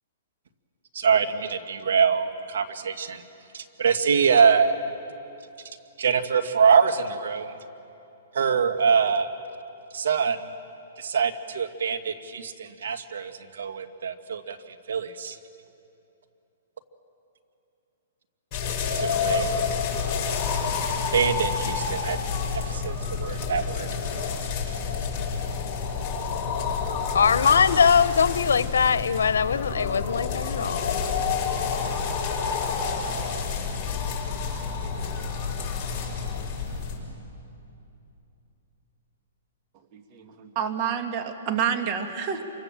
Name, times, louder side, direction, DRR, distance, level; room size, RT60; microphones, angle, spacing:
voice 1, 0.9-3.2 3.5-4.8 6.0-7.5 8.3-9.3 9.9-10.5 11.0-14.6 14.9-15.4 19.0-19.5 21.1-22.2 22.5-23.9, right 6 dB, 75° right, 8 dB, 1.7 m, -24 dB
sound 1, 18.5-37.0, left 5 dB, 25° left, 6.5 m, -29 dB
voice 2, 27.1-31.0, left 6 dB, 85° left, 14 dB, 0.9 m, -21 dB
voice 3, 39.9-42.4, right 7 dB, 35° right, 6 dB, 1.9 m, -28 dB
28.0 x 25.0 x 7.4 m, 2.8 s
hypercardioid pair, 150°, 0 cm